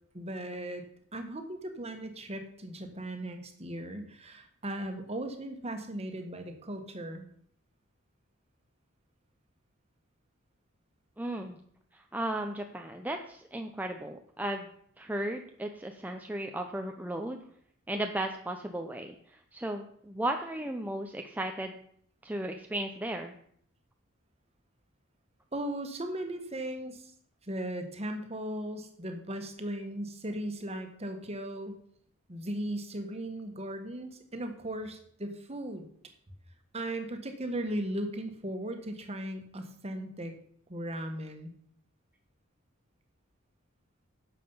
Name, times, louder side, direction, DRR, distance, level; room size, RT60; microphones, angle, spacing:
voice 1, 0.1-0.8 1.1-7.3 25.5-27.1 27.4-31.8 32.3-35.9 36.7-40.3 40.7-41.5, right 1 dB, 30° right, 6 dB, 1.6 m, -37 dB
voice 2, 11.2-11.6 11.9-14.7 15.0-17.4 17.9-21.8 22.2-23.3, right 1 dB, 10° right, 4 dB, 0.7 m, -35 dB
11.0 x 7.5 x 5.6 m, 0.65 s
head